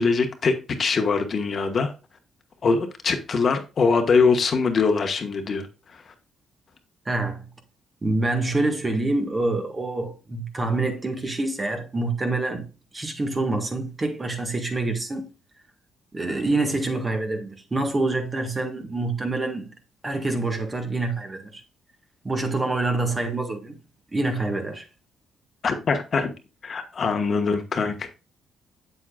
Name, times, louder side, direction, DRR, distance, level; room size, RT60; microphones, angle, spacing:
voice 1, 0.0-1.9 2.6-6.0 25.6-26.3 26.6-28.1, left 4 dB, 45° left, 1.2 m, -23 dB
voice 2, 7.0-7.4 8.0-12.7 12.9-15.3 16.1-19.7 20.0-21.6 22.2-23.8 24.1-24.9, right 2 dB, 25° right, 1.7 m, -26 dB
7.8 x 7.5 x 2.4 m
cardioid pair, 90°, 0 cm